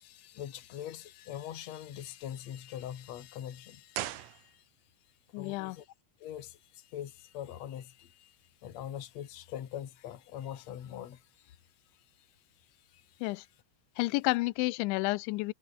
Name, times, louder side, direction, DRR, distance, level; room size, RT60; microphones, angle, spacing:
voice 1, 0.0-4.7 5.4-5.9 6.2-11.6 11.9-12.3 12.8-13.2, left 10 dB, 55° left, 1.9 m, -43 dB
sound 1, 3.9-5.0 5.3-5.4, right 14 dB, 80° right, 4.2 m, -40 dB
voice 2, 5.3-5.8 13.2-13.4 14.0-15.5, left 22 dB, 85° left, 2.8 m, -30 dB
omnidirectional pair, 5.9 m